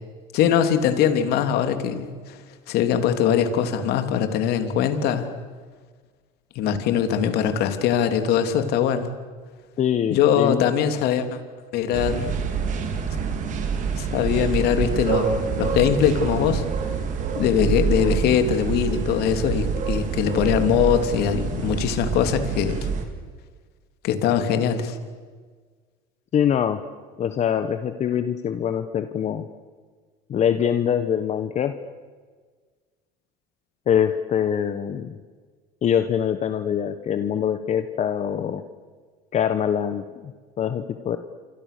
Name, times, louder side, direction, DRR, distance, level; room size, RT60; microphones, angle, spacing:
voice 1, 0.3-2.4 2.7-5.3 6.5-9.1 10.1-11.4 11.7-12.3 14.0-16.6 17.3-22.9 24.0-25.0, left 8 dB, 65° left, 8 dB, 3.1 m, -22 dB
voice 2, 9.8-10.6 26.3-26.8 27.2-29.5 30.3-31.7 33.9-35.2 35.8-38.6 39.3-40.3 40.6-41.2, left 9 dB, 40° left, 9 dB, 1.4 m, -24 dB
sound 1, 11.9-23.0, right 6 dB, 45° right, 4.3 m, -26 dB
28.5 x 26.0 x 6.9 m, 1.5 s
supercardioid pair, 105°, 18 cm